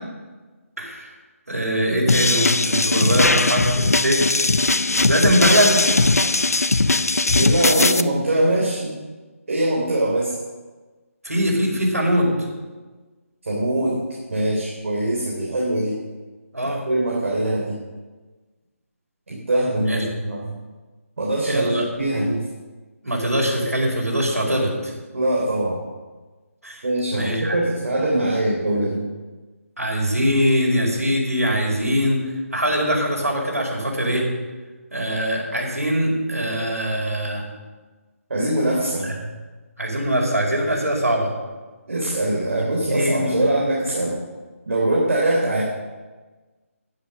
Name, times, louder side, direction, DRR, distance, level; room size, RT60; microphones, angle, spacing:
voice 1, 0.8-1.1 1.5-4.2 5.1-5.9 11.2-12.3 16.5-16.8 19.9-20.0 21.4-21.9 23.0-24.9 26.6-26.8 27.1-27.6 29.8-32.2 32.5-34.3 34.9-37.4 39.0-39.2 39.8-41.3 42.6-43.5, equal, 90° right, -1 dB, 5.2 m, -22 dB
sound 1, 2.1-8.0, left 3 dB, 85° left, 0.6 m, -19 dB
voice 2, 7.3-9.0 9.5-10.3 13.4-14.0 14.3-16.0 16.9-17.7 19.3-20.5 21.2-21.6 22.0-22.4 25.1-25.8 26.8-29.0 38.3-39.1 41.9-44.2 44.6-45.6, right 1 dB, 60° right, -4 dB, 3.3 m, -22 dB
11.0 x 10.5 x 6.5 m, 1.3 s
figure-of-eight pair, 155°, 8 cm